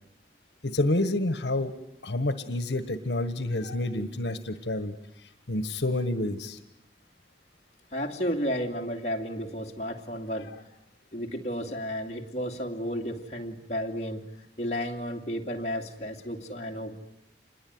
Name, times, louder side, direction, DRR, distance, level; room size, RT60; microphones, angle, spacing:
voice 1, 0.6-1.7 2.0-4.9 5.5-6.6, left 1 dB, 80° left, 10 dB, 1.5 m, -28 dB
voice 2, 7.9-10.5 11.1-14.2 14.6-16.9, equal, 40° left, 1 dB, 2.6 m, -32 dB
27.5 x 21.5 x 9.6 m, 0.81 s
head